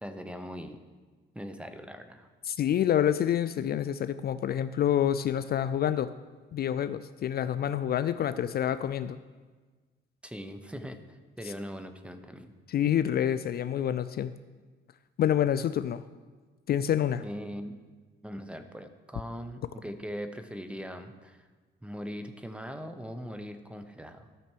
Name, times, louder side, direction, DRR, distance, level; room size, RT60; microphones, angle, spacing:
voice 1, 0.0-0.8 1.3-2.3 10.2-12.5 17.2-17.8 18.2-21.5 21.8-24.3, equal, 5° right, 8 dB, 0.8 m, -40 dB
voice 2, 2.5-6.1 6.5-9.2 11.4-11.5 12.7-14.3 15.2-16.0 16.7-17.2, left 10 dB, 50° left, 13 dB, 0.4 m, -27 dB
13.5 x 6.0 x 4.6 m, 1.4 s
cardioid pair, 90°, 20 cm